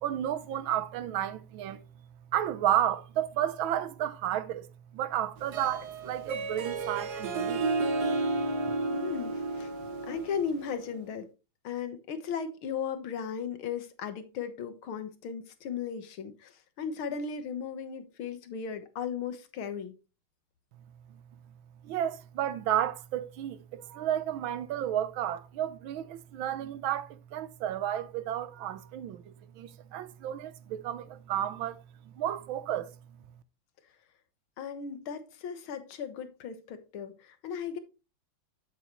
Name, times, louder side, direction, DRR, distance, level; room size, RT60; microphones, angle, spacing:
voice 1, 0.0-1.8 2.3-4.7 4.9-7.7 21.8-32.9, right 11 dB, 75° right, 1.4 m, -32 dB
Harp, 5.4-10.9, right 3 dB, 55° right, 1.5 m, -32 dB
voice 2, 8.9-9.8 10.1-11.3 11.6-19.9 34.6-37.8, left 6 dB, 80° left, 1.9 m, -36 dB
8.2 x 7.7 x 3.0 m
omnidirectional pair, 2.3 m